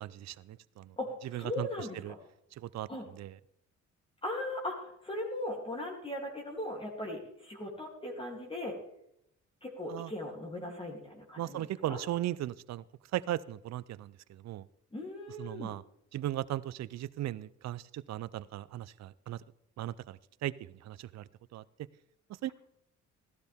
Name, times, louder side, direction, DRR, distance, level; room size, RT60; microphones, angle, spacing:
voice 1, 0.0-1.0 1.3-1.7 2.0-2.1 2.6-3.4 9.9-10.1 11.4-12.8 13.1-14.7 15.4-15.8 16.1-19.4 19.8-21.6 22.4-22.5, right 13 dB, 60° right, 18 dB, 0.6 m, -37 dB
voice 2, 1.0-2.2 2.9-3.1 4.2-8.8 9.6-12.0 14.9-15.7, left 1 dB, 20° left, 0 dB, 3.0 m, -38 dB
15.5 x 12.0 x 3.6 m, 0.77 s
cardioid pair, 90°, 30 cm